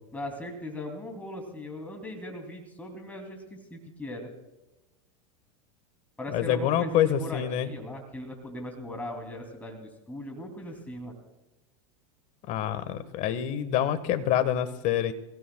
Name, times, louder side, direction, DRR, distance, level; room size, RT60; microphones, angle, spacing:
voice 1, 0.1-4.3 6.2-11.2, left 1 dB, 10° left, 2 dB, 2.8 m, -39 dB
voice 2, 6.3-7.7 12.5-15.1, left 10 dB, 45° left, 12 dB, 1.5 m, -26 dB
27.0 x 16.0 x 2.3 m, 0.99 s
hypercardioid pair, 105°, 17 cm